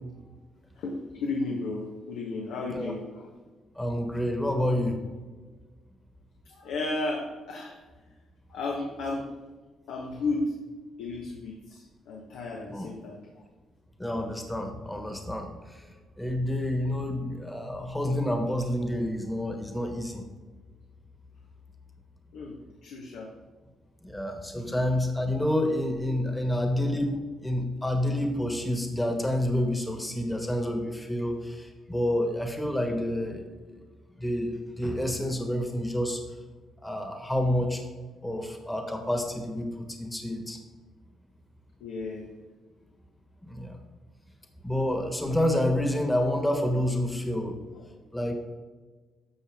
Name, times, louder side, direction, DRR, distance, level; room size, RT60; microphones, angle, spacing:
voice 1, 0.7-3.3 6.4-7.7 8.5-9.3 9.9-10.5 11.0-13.3 22.3-22.6 22.8-23.3 24.6-24.8 26.3-26.5 41.8-42.3 47.7-47.9, left 3 dB, 90° left, -1 dB, 1.2 m, -33 dB
voice 2, 3.8-5.0 12.7-12.9 14.0-15.8 16.2-20.2 24.0-33.5 34.2-36.2 36.8-37.8 38.2-40.6 43.5-43.8 44.6-47.6 48.1-48.3, left 1 dB, 10° left, 5 dB, 1.3 m, -28 dB
11.0 x 6.6 x 3.6 m, 1.4 s
cardioid pair, 90°, 0 cm